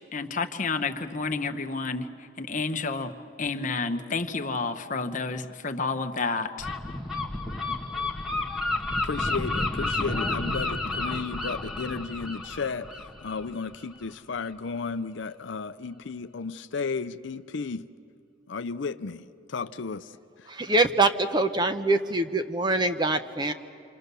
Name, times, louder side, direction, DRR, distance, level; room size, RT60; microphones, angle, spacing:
voice 1, 0.1-2.1 2.4-3.1 3.4-6.7, left 4 dB, 40° left, 7 dB, 1.0 m, -30 dB
Gull seagull, 6.6-14.1, left 2 dB, ahead, 1.3 m, -31 dB
voice 2, 9.0-17.9 18.5-20.8, left 4 dB, 65° left, 11 dB, 0.6 m, -34 dB
voice 3, 20.5-23.5, right 2 dB, 20° right, 9 dB, 0.7 m, -24 dB
27.5 x 26.0 x 6.9 m, 2.4 s
head